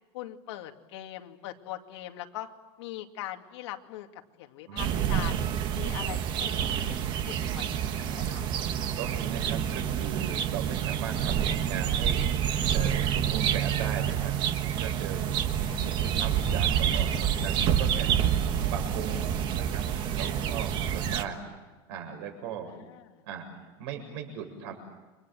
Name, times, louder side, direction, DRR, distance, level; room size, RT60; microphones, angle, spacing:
voice 1, 0.1-2.5 2.8-4.1 4.4-5.4 5.7-8.5 15.6-15.9 22.7-23.2, left 14 dB, 85° left, 4 dB, 2.5 m, -41 dB
voice 2, 4.7-5.5 9.0-12.3 12.7-14.3 14.8-15.2 15.5-18.1 18.7-21.5 21.9-22.7 23.2-23.5 23.8-24.7, right 7 dB, 70° right, 4 dB, 7.7 m, -38 dB
sound 1, 4.8-21.2, right 9 dB, 35° right, 1.4 m, -28 dB
30.0 x 25.5 x 7.8 m, 1.2 s
supercardioid pair, 170°, 14 cm